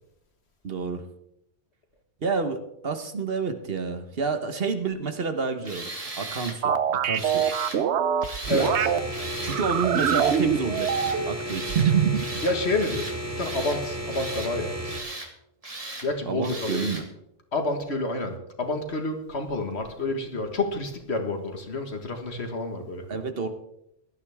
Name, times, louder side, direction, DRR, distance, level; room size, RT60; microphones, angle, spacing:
voice 1, 0.6-1.0 2.2-7.5 9.4-12.4 16.3-17.0 23.1-23.5, right 4 dB, 60° right, 8 dB, 1.4 m, -30 dB
Tools, 5.6-6.6 7.1-7.8 8.2-8.7 9.1-9.6 9.9-10.4 10.7-11.2 11.5-11.9 12.2-12.5 12.8-13.8 14.1-14.5 14.8-15.3 15.6-16.1 16.4-17.0, right 2 dB, 35° right, 1.9 m, -37 dB
sound 1, 6.6-9.0 9.5-11.4 11.7-12.3, right 8 dB, 80° right, 1.0 m, -24 dB
sound 2, 8.4-15.0, equal, 15° right, 2.2 m, -34 dB
voice 2, 8.5-8.9 12.4-14.8 16.0-16.8 17.5-23.1, left 2 dB, 75° left, 5 dB, 2.0 m, -29 dB
17.5 x 12.0 x 3.5 m, 0.79 s
omnidirectional pair, 1.1 m